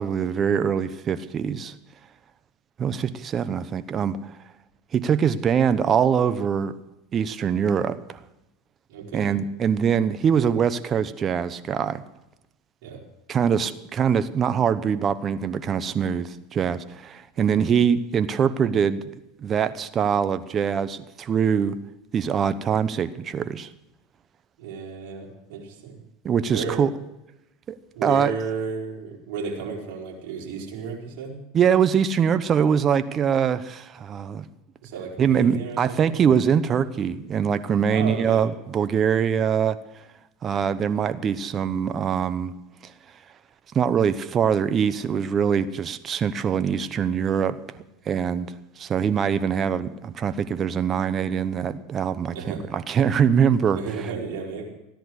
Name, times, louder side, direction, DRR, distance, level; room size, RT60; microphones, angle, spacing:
voice 1, 0.0-1.7 2.8-4.3 4.9-6.7 7.1-8.2 9.1-12.0 13.3-19.0 19.4-21.8 22.1-23.7 26.2-26.9 27.7-28.3 31.5-34.4 35.2-39.8 40.4-42.5 42.8-42.9 43.7-47.6 48.1-48.5 48.8-54.1, right 7 dB, 35° right, 13 dB, 1.0 m, -23 dB
voice 2, 8.9-9.3 12.8-13.0 17.4-17.6 24.6-26.0 26.5-26.8 27.9-31.4 34.8-36.2 37.9-38.4 52.3-52.6 53.7-54.7, right 5 dB, 65° right, -1 dB, 4.5 m, -33 dB
16.0 x 10.5 x 6.4 m, 0.92 s
hypercardioid pair, 90°, 0 cm